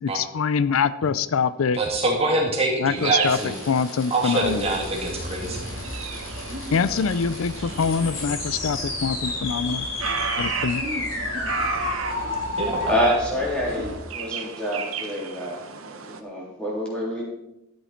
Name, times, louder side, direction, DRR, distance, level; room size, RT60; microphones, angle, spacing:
voice 1, 0.0-1.8 2.8-4.7 6.7-9.9 10.4-10.8, left 6 dB, 85° left, 16 dB, 0.5 m, -24 dB
voice 2, 1.8-3.5 4.1-5.6 12.6-12.9, right 2 dB, 30° right, -1 dB, 2.5 m, -24 dB
sound 1, 3.0-16.2, right 6 dB, 85° right, 1.1 m, -35 dB
sound 2, 3.2-13.0, left 3 dB, 65° left, 2.9 m, -32 dB
sound 3, 4.4-13.9, equal, 60° right, 2.4 m, -37 dB
voice 3, 12.8-17.2, equal, 5° left, -4 dB, 3.5 m, -27 dB
12.5 x 8.1 x 4.4 m, 0.85 s
head